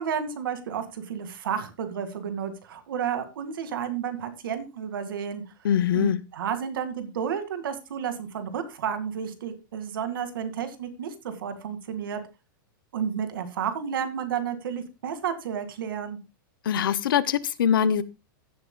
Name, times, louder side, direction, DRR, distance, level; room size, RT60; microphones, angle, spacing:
voice 1, 0.0-5.4 5.9-12.2 12.9-16.2, right 8 dB, 80° right, 1.9 m, -31 dB
voice 2, 5.6-6.2 16.6-18.0, left 9 dB, 80° left, 0.7 m, -23 dB
15.5 x 7.7 x 2.2 m
supercardioid pair, 170°, 11 cm